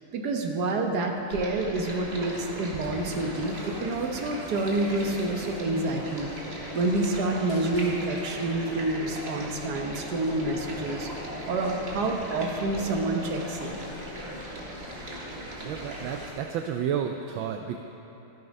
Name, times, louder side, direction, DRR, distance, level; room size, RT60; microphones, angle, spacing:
voice 1, 0.1-6.3 6.7-11.1 11.5-13.8, right 2 dB, 55° right, 2 dB, 1.6 m, -28 dB
Stream, 1.3-16.3, right 1 dB, 30° right, 2.1 m, -40 dB
sound 1, 2.1-16.3, left 1 dB, 60° left, 2.8 m, -42 dB
voice 2, 15.6-17.8, right 8 dB, 75° right, 4 dB, 1.3 m, -31 dB
14.0 x 12.0 x 5.4 m, 3.0 s
omnidirectional pair, 2.3 m